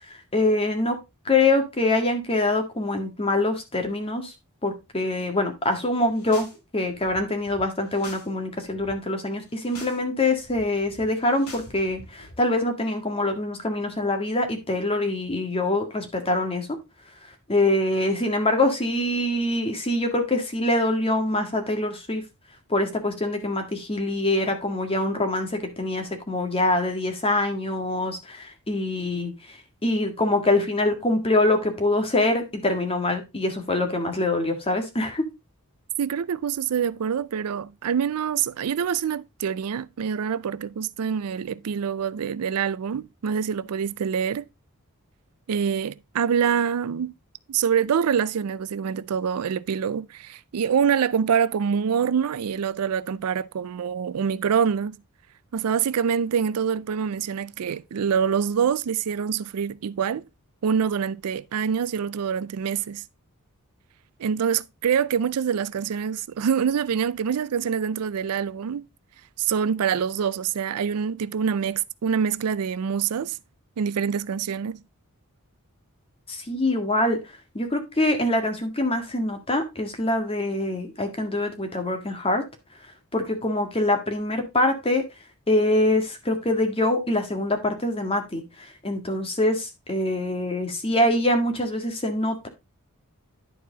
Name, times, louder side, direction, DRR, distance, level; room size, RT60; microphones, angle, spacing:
voice 1, 0.1-1.0 1.2-4.3 4.6-6.5 6.7-16.7 17.5-22.2 22.7-35.2 76.3-77.2 77.5-82.4 83.1-85.0 85.5-92.5, left 2 dB, 25° left, 1.8 m, -24 dB
sound 1, 6.0-6.6 6.8-8.3 8.5-8.9 9.4-10.0 10.3-12.3, left 2 dB, 75° left, 3.1 m, -45 dB
voice 2, 36.0-44.4 45.5-47.1 47.5-55.0 55.5-60.2 60.6-63.0 64.2-68.9 69.4-73.4 73.8-74.8, right 7 dB, 75° right, 0.4 m, -25 dB
11.0 x 4.7 x 3.9 m
head